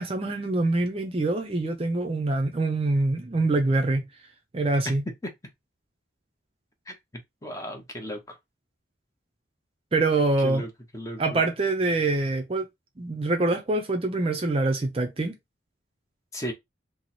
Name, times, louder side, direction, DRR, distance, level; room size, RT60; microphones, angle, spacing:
voice 1, 0.0-4.1 4.5-5.0 9.9-10.6 11.2-12.7 13.0-15.3, right 2 dB, 30° right, 0.5 m, -25 dB
voice 2, 7.4-8.2 10.4-10.7 10.9-11.4 16.3-16.5, equal, 15° left, 0.7 m, -35 dB
3.0 x 2.0 x 4.0 m
head